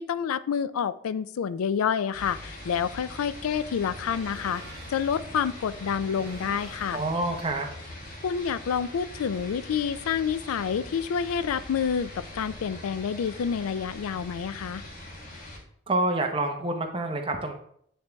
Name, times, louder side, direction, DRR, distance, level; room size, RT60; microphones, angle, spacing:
voice 1, 0.0-7.0 8.2-14.8, left 7 dB, 85° left, 16 dB, 0.3 m, -28 dB
sound 1, 2.1-15.6, left 1 dB, 40° left, 1.3 m, -42 dB
sound 2, 3.0-7.8, right 2 dB, 80° right, 1.3 m, -48 dB
voice 2, 6.9-7.7 15.9-17.5, right 2 dB, 25° right, 4 dB, 0.7 m, -27 dB
9.0 x 3.3 x 3.4 m, 0.67 s
head